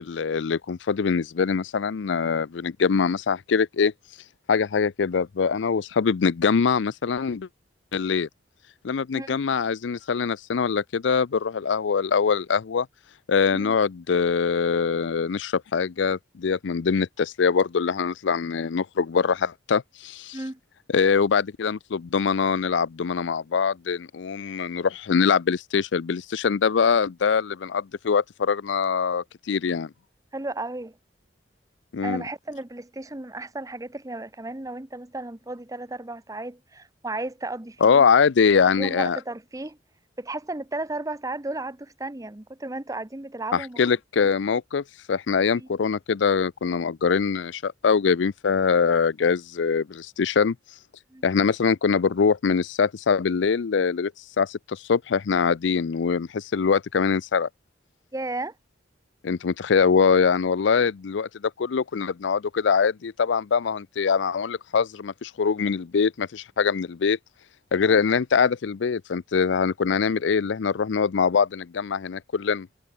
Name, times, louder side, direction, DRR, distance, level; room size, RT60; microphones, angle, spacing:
voice 1, 0.0-3.9 4.5-7.5 7.9-8.3 8.8-12.9 13.3-20.4 20.9-29.9 31.9-32.2 37.8-39.2 43.5-50.6 51.2-54.1 54.4-57.5 59.2-61.3 61.6-67.2 67.7-72.7, left 5 dB, 75° left, 0.5 m, -23 dB
voice 2, 30.3-30.9 32.0-38.1 38.6-39.8 40.2-43.8 44.2-44.3 45.5-45.7 51.1-51.2 58.1-58.5 67.8-68.0, right 2 dB, 20° right, 0.9 m, -34 dB
head